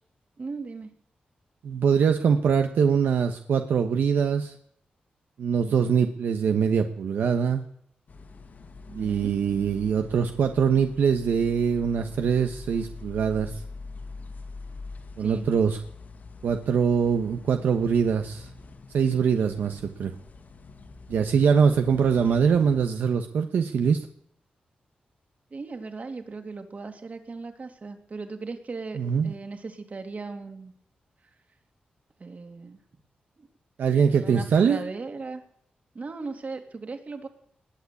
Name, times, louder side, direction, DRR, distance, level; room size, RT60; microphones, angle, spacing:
voice 1, 0.4-0.9 5.7-5.8 8.9-9.4 15.2-15.5 19.3-19.6 25.5-30.7 32.2-32.8 33.4-33.5 34.1-35.4 35.9-37.3, right 4 dB, 50° right, 6 dB, 2.9 m, -38 dB
voice 2, 1.6-4.5 5.4-7.6 8.9-13.6 15.2-15.8 16.4-18.5 18.9-20.1 21.1-24.1 29.0-29.3 33.8-34.8, right 6 dB, 85° right, 6 dB, 1.2 m, -23 dB
sound 1, 8.1-22.9, left 3 dB, 60° left, 2.1 m, -44 dB
20.0 x 8.5 x 8.4 m, 0.67 s
cardioid pair, 55°, 3 cm